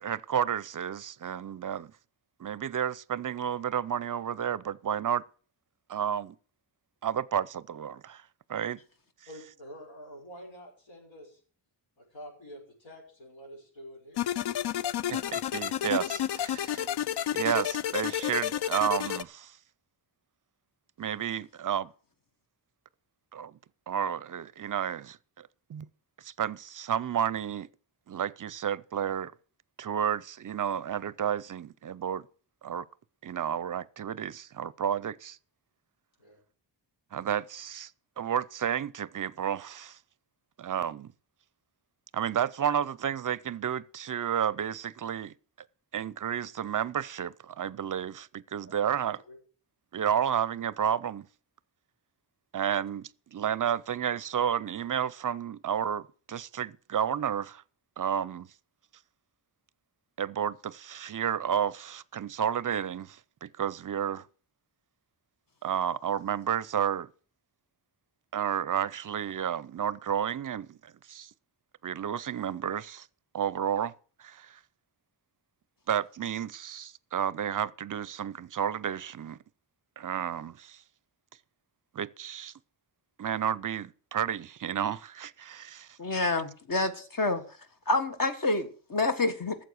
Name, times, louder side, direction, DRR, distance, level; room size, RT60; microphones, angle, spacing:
voice 1, 0.0-1.9 2.4-5.2 5.9-6.3 7.0-8.2 8.5-8.8 15.1-16.9 17.3-19.6 21.0-21.9 23.3-23.6 23.9-25.9 26.2-27.7 28.1-29.3 29.8-32.3 32.6-32.8 33.2-35.4 37.1-37.9 38.2-40.0 40.6-41.1 42.1-45.3 45.9-49.2 49.9-51.3 52.5-57.6 58.0-58.5 60.2-64.3 65.6-67.1 68.3-71.3 71.8-73.1 73.3-73.9 74.2-74.6 75.9-79.4 80.0-80.8 81.9-82.5 83.2-85.9 86.8-86.9, right 9 dB, 45° right, 0.5 m, -31 dB
voice 2, 9.3-11.4 12.0-14.3 36.2-36.4 48.7-48.8 49.0-49.4, equal, 80° left, 6.2 m, -48 dB
sound 1, 14.2-19.2, left 10 dB, 60° left, 0.5 m, -31 dB
voice 3, 86.0-87.4 87.9-89.6, left 2 dB, 45° left, 1.5 m, -28 dB
14.0 x 7.6 x 6.5 m
wide cardioid pair, 135°, 46 cm